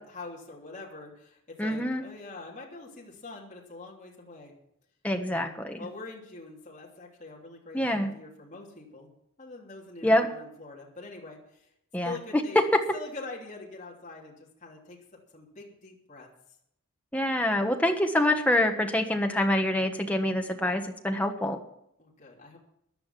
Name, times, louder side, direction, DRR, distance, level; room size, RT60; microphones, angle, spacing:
voice 1, 0.0-4.5 5.8-9.1 9.4-11.7 12.0-12.6 12.9-16.3 22.0-22.6, left 3 dB, 35° left, -2 dB, 3.1 m, -44 dB
voice 2, 1.6-2.0 5.0-5.8 7.7-8.1 10.0-10.3 11.9-12.4 17.1-21.6, left 1 dB, 5° left, 4 dB, 1.2 m, -26 dB
15.0 x 10.5 x 5.9 m, 0.76 s
head